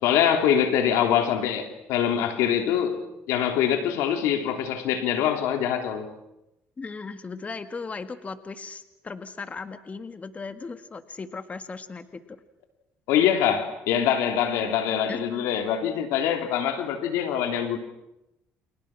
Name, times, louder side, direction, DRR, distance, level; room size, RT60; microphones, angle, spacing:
voice 1, 0.0-3.0 3.3-6.1 13.1-17.8, left 9 dB, 85° left, 3.3 m, -24 dB
voice 2, 6.8-12.4 15.1-15.3, left 4 dB, 30° left, 1.8 m, -37 dB
30.0 x 28.0 x 6.1 m
cardioid pair, 90°, 5 cm